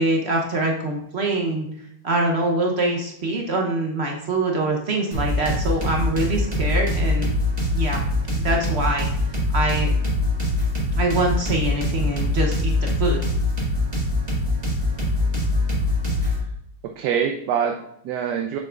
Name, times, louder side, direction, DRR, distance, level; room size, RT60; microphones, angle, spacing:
voice 1, 0.0-1.7 2.0-7.3 7.7-8.0 8.4-9.1 9.5-10.0 10.9-13.2, right 2 dB, 50° right, 1 dB, 0.8 m, -24 dB
sound 1, 5.1-16.4, left 2 dB, 25° right, 1.9 m, -23 dB
voice 2, 17.0-18.6, right 8 dB, 75° right, 4 dB, 1.1 m, -25 dB
6.6 x 6.4 x 2.4 m, 0.73 s
omnidirectional pair, 1.9 m